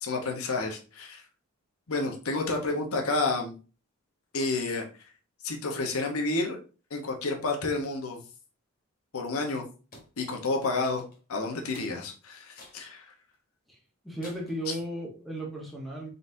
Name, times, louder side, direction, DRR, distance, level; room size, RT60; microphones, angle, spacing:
voice 1, 0.0-1.2 1.9-3.6 4.3-4.8 5.4-6.6 6.9-8.2 9.1-9.7 10.2-11.0 11.3-13.1 14.7-14.8, left 3 dB, 75° left, 2 dB, 0.9 m, -30 dB
sound 1, 9.9-10.1 10.8-11.2 11.7-11.9 12.6-12.8 13.3-13.4 14.2-14.6, left 2 dB, 40° left, 1.4 m, -50 dB
voice 2, 14.0-16.1, right 1 dB, ahead, -3 dB, 0.9 m, -35 dB
3.9 x 3.9 x 2.6 m, 0.34 s
head